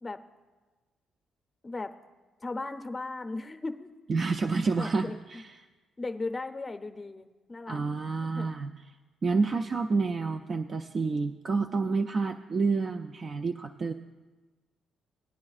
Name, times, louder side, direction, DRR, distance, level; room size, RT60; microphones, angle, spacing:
voice 1, 2.4-3.9 4.8-5.4 6.0-7.8 8.2-8.5, left 3 dB, 25° left, 7 dB, 0.6 m, -37 dB
voice 2, 4.1-5.5 7.7-8.7 9.2-13.9, right 4 dB, 45° right, 6 dB, 0.4 m, -29 dB
19.0 x 9.7 x 2.4 m, 1.3 s
cardioid pair, 70°, 0 cm